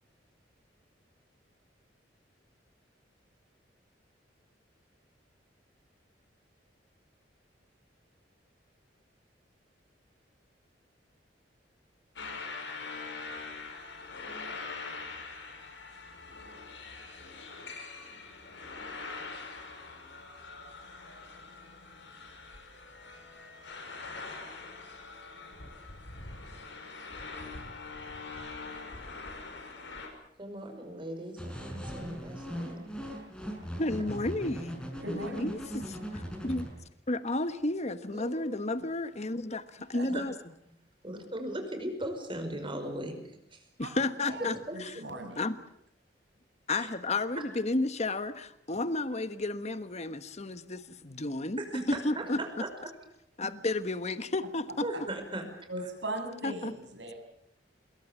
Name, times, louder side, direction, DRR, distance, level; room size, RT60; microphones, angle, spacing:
sound 1, 12.2-30.1, left 4 dB, 90° left, 6.1 m, -43 dB
voice 1, 30.4-33.0 40.1-40.2 41.0-43.6 44.7-44.8 46.7-46.9 51.6-52.7 54.8-55.5, right 1 dB, 30° right, 5 dB, 5.4 m, -38 dB
sound 2, 31.4-36.7, equal, 5° left, 5.7 m, -39 dB
voice 2, 33.8-36.7 37.1-40.3 43.8-44.9 45.4-45.6 46.7-51.6 51.9-52.4 53.4-54.8 56.4-56.7, left 2 dB, 40° left, 11 dB, 1.3 m, -32 dB
voice 3, 35.0-35.5 38.1-38.4 39.9-40.1 43.8-43.9 44.2-45.5 51.5-51.6 54.9-55.0 55.7-57.1, right 1 dB, 75° right, 4 dB, 7.1 m, -39 dB
26.5 x 22.0 x 7.4 m, 0.73 s
head